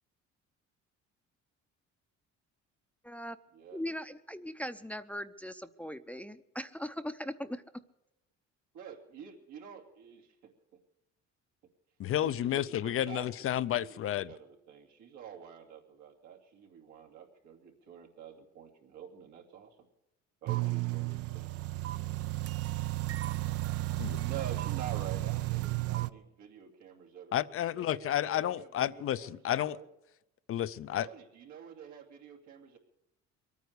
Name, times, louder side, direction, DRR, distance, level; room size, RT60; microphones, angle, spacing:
voice 1, 3.0-3.4 3.7-7.6, equal, 5° left, 10 dB, 0.6 m, -39 dB
voice 2, 8.7-10.5 12.2-19.8 20.4-21.5 24.2-29.9 31.0-32.8, right 8 dB, 85° right, 1 dB, 2.7 m, -48 dB
voice 3, 12.0-14.3 24.0-24.2 27.3-29.8 30.5-31.1, left 11 dB, 50° left, 16 dB, 0.5 m, -31 dB
sound 1, 20.5-26.1, right 18 dB, 55° right, 0.5 m, -33 dB
23.0 x 9.4 x 6.6 m, 0.90 s
cardioid pair, 105°, 29 cm